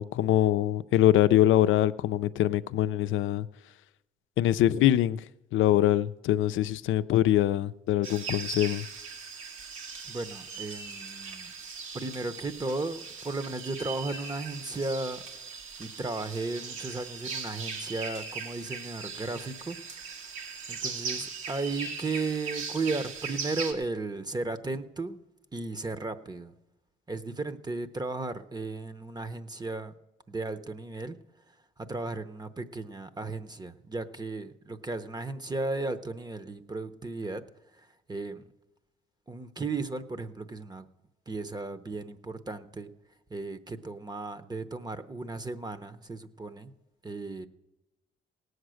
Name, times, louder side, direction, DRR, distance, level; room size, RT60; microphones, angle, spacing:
voice 1, 0.0-3.5 4.4-5.2 5.5-8.9, left 13 dB, 80° left, 0.5 m, -24 dB
sound 1, 8.0-23.7, right 5 dB, 85° right, 2.0 m, -39 dB
voice 2, 10.0-11.5 11.9-15.2 15.8-19.8 20.7-25.2 25.5-26.5 27.1-29.9 30.3-31.2 31.8-37.4 37.8-38.4 39.3-40.9 41.3-42.9 43.3-46.7 47.0-47.5, right 3 dB, 20° right, 0.8 m, -35 dB
17.5 x 8.0 x 6.4 m
cardioid pair, 90°, 20 cm